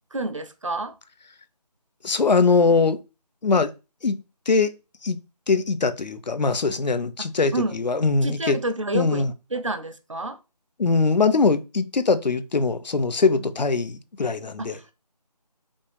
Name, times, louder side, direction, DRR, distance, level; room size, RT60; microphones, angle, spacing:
voice 1, 0.1-0.9 7.2-7.8 8.2-10.4 13.4-13.5 14.6-14.9, right 2 dB, 50° right, 0.6 m, -29 dB
voice 2, 2.0-3.0 3.4-3.7 4.0-4.1 4.5-4.7 5.0-5.2 5.5-8.6 8.9-9.3 10.8-14.9, left 4 dB, 90° left, 0.6 m, -21 dB
5.2 x 2.6 x 3.3 m
figure-of-eight pair, 175°, 21 cm